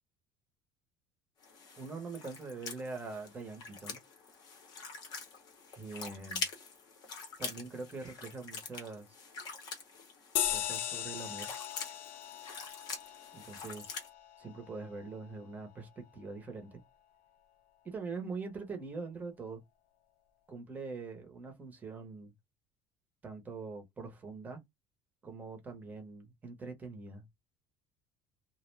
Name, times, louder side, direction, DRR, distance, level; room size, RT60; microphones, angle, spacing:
sound 1, 1.4-14.1, left 5 dB, 40° left, 0.7 m, -45 dB
voice 1, 1.8-4.0 5.7-6.4 7.4-9.1 10.5-11.5 13.3-13.9 14.4-16.8 17.8-19.6 20.5-22.3 23.2-24.6 25.2-27.3, right 4 dB, 15° right, 0.6 m, -43 dB
sound 2, 10.4-15.3, left 11 dB, 65° left, 0.4 m, -38 dB
2.3 x 2.0 x 3.1 m
cardioid pair, 175°, 10 cm